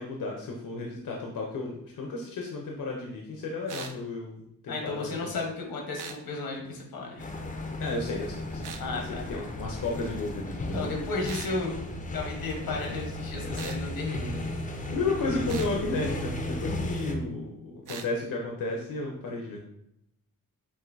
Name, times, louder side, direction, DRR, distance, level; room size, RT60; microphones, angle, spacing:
voice 1, 0.0-5.4 7.8-8.7 9.0-10.9 14.9-19.6, left 3 dB, 65° left, -1 dB, 0.7 m, -33 dB
sound 1, 3.7-4.0 6.0-6.2 8.6-8.9 11.2-11.6 13.5-13.8 15.5-15.7 17.9-18.1, right 6 dB, 65° right, 0.5 m, -40 dB
voice 2, 4.7-7.3 8.8-9.2 10.7-11.7 12.1-14.4, left 3 dB, 85° left, 0 dB, 1.2 m, -34 dB
sound 2, 7.2-17.1, left 1 dB, 25° left, 0.5 m, -35 dB
7.1 x 2.6 x 2.6 m, 0.78 s
wide cardioid pair, 170°, 35 cm